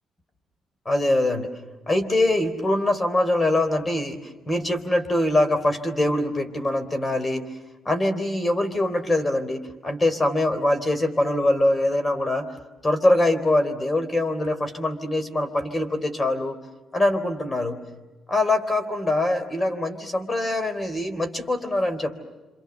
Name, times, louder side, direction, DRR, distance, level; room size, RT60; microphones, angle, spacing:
voice 1, 0.9-1.5 1.9-4.2 4.5-7.5 7.9-12.5 12.8-16.6 16.9-17.8 18.3-22.2, left 1 dB, 25° left, 9 dB, 3.5 m, -23 dB
28.0 x 26.5 x 7.1 m, 1.2 s
cardioid pair, 90°, 0 cm